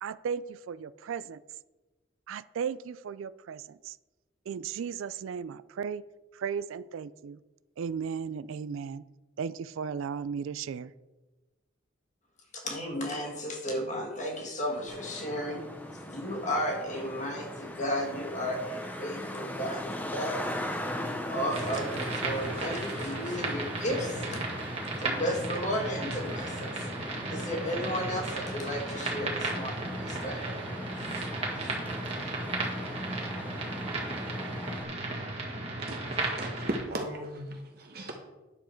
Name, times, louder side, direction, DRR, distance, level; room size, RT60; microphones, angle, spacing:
voice 1, 0.0-1.4 2.3-4.0 4.5-6.0 6.3-7.4 7.8-9.0 9.4-10.9, right 6 dB, 80° right, 0.3 m, -35 dB
voice 2, 12.5-15.7 16.1-20.4 21.0-24.4 25.0-26.9 27.3-30.6 31.1-31.3 31.6-31.8 32.8-32.9 33.1-33.2, equal, 35° left, 1.8 m, -34 dB
Traffic noise roadway noise, 14.9-34.8, left 1 dB, 10° left, 0.7 m, -39 dB
sound 1, 21.5-36.8, right 2 dB, 30° right, 1.8 m, -35 dB
voice 3, 35.9-38.2, right 1 dB, 50° right, 1.0 m, -37 dB
9.9 x 7.1 x 4.5 m
head